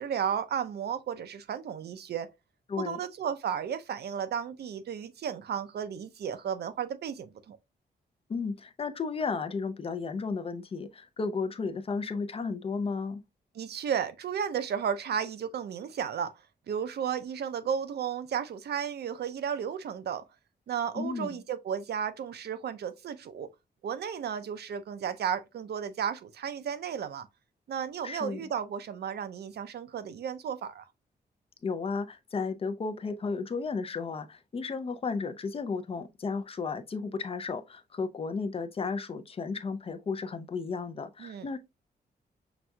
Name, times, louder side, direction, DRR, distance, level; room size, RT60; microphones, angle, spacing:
voice 1, 0.0-2.3 2.8-7.6 13.5-16.3 16.7-20.2 20.7-23.5 23.8-27.3 27.7-30.8 41.2-41.5, right 8 dB, 75° right, 0.5 m, -33 dB
voice 2, 2.7-3.0 8.3-13.2 20.9-21.4 28.0-28.4 31.6-41.6, left 4 dB, 35° left, 0.4 m, -33 dB
5.8 x 2.6 x 2.2 m
wide cardioid pair, 140°, 17 cm